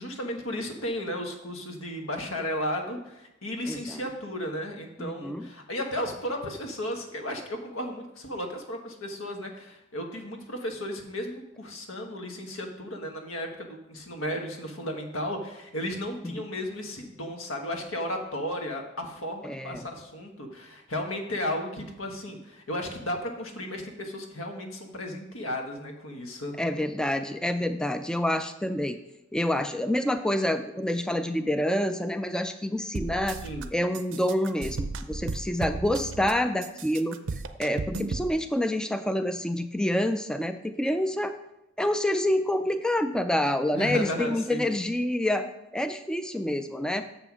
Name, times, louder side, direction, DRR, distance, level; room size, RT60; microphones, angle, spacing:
voice 1, 0.0-26.6 33.4-33.7 43.7-44.7, left 1 dB, 80° left, 3 dB, 1.3 m, -34 dB
voice 2, 3.7-4.0 5.0-5.5 16.2-16.3 19.4-19.9 26.6-29.0 29.3-33.4 33.7-37.2 37.6-41.4 41.8-47.1, left 1 dB, 5° left, 8 dB, 0.3 m, -27 dB
sound 1, 32.9-33.6 33.9-36.3 36.6-38.3, right 4 dB, 65° right, 0.6 m, -34 dB
7.0 x 5.6 x 6.0 m, 0.91 s
head